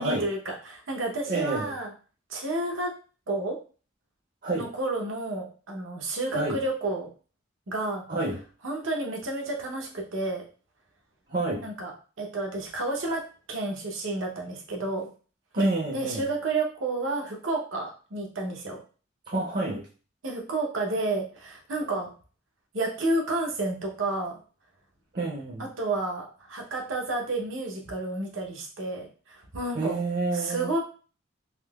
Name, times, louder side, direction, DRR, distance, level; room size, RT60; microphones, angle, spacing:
voice 1, 0.0-1.9 2.3-2.9 3.3-3.6 4.6-7.1 7.7-8.0 8.6-10.4 11.6-11.9 12.2-13.2 13.5-15.1 15.9-18.8 20.2-22.1 22.7-24.4 25.6-30.0 30.3-30.8, right 2 dB, 85° right, 1 dB, 0.8 m, -30 dB
voice 2, 1.3-1.7 4.4-4.6 6.3-6.6 8.1-8.4 11.3-11.7 15.5-16.3 19.3-19.8 25.1-25.7 29.7-30.7, right 2 dB, 45° right, -3 dB, 0.6 m, -28 dB
3.7 x 2.8 x 2.3 m, 0.38 s
head